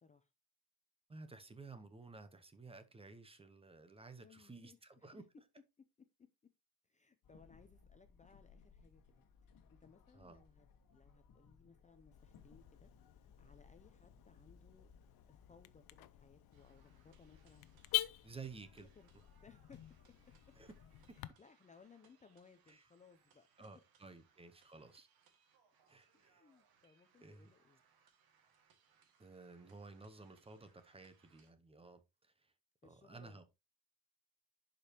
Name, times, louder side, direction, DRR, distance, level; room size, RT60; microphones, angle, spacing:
voice 1, 1.1-5.2 10.1-10.4 18.2-18.9 20.5-20.7 22.7-22.8 23.6-25.1 25.9-26.5 27.2-27.5 29.2-32.5 32.8-33.4, right 4 dB, 15° right, 0.8 m, -54 dB
voice 2, 4.2-5.2 6.8-9.5 9.8-10.7 10.9-12.9 13.2-14.9 15.3-18.2 19.0-19.1 19.4-19.9 21.1-23.5 26.1-27.8 32.8-33.4, left 5 dB, 20° left, 0.5 m, -64 dB
sound 1, 7.2-21.2, left 5 dB, 65° left, 1.3 m, -65 dB
Car / Alarm, 12.1-21.3, left 17 dB, 90° left, 0.6 m, -46 dB
sound 2, 16.5-31.5, right 6 dB, 85° right, 1.9 m, -73 dB
11.0 x 5.2 x 2.8 m
cardioid pair, 175°, 36 cm